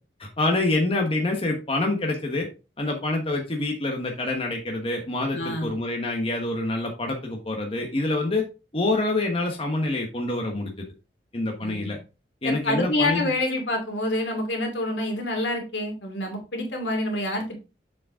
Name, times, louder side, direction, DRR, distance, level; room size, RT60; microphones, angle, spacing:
voice 1, 0.2-2.5 2.8-8.4 8.7-10.8 11.3-12.0 12.4-13.3, left 2 dB, 30° left, 1 dB, 1.3 m, -26 dB
voice 2, 5.3-5.8 11.6-11.9 12.4-17.6, left 1 dB, 80° left, 2 dB, 2.5 m, -27 dB
7.0 x 5.2 x 3.7 m, 0.30 s
head